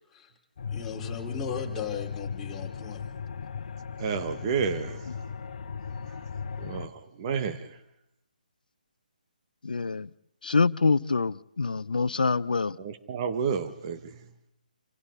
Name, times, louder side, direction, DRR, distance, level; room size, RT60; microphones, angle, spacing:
sound 1, 0.6-6.9, left 6 dB, 55° left, 1.3 m, -37 dB
voice 1, 0.7-3.0, left 6 dB, 10° left, 4.5 m, -36 dB
voice 2, 4.0-5.3 6.6-7.8 12.8-14.2, right 6 dB, 35° right, 1.9 m, -31 dB
voice 3, 9.6-10.1 10.4-12.8, left 4 dB, 70° left, 0.9 m, -25 dB
28.5 x 28.0 x 4.1 m
figure-of-eight pair, 145°, 5 cm